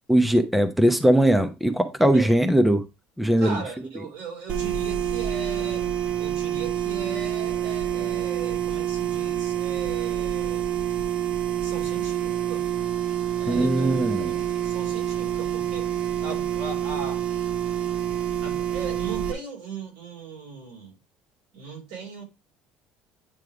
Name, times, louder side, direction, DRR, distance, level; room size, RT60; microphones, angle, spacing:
voice 1, 0.1-2.8 3.2-3.6 13.5-14.3, right 1 dB, 5° right, 0.9 m, -20 dB
voice 2, 3.4-5.9 6.2-10.7 11.5-12.7 13.4-17.2 18.4-21.0 21.5-22.2, right 5 dB, 80° right, 3.8 m, -38 dB
machine hum, 4.5-19.3, right 11 dB, 50° right, 0.9 m, -27 dB
9.4 x 3.3 x 4.9 m
cardioid pair, 115°, 3 cm